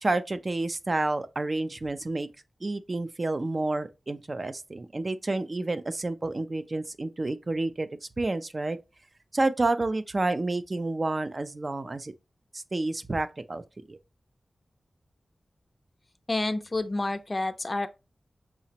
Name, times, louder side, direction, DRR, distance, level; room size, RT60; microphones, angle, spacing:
voice 1, 0.0-2.3 2.6-7.9 8.2-8.8 9.3-12.1 12.5-13.6 13.9-14.0, right 2 dB, 40° right, 0.4 m, -29 dB
voice 2, 16.3-17.9, left 2 dB, 35° left, 0.4 m, -29 dB
5.7 x 2.0 x 2.7 m
wide cardioid pair, 85°, 0 cm